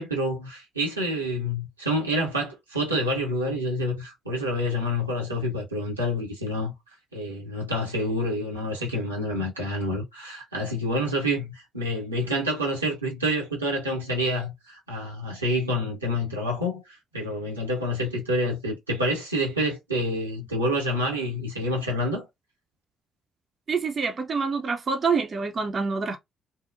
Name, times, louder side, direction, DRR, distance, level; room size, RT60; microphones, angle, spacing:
voice 1, 0.0-6.7 7.1-22.3, equal, 85° right, 0.7 m, -28 dB
voice 2, 23.7-26.2, right 5 dB, 40° right, 0.5 m, -26 dB
2.7 x 2.0 x 2.5 m
figure-of-eight pair, 40°, 0 cm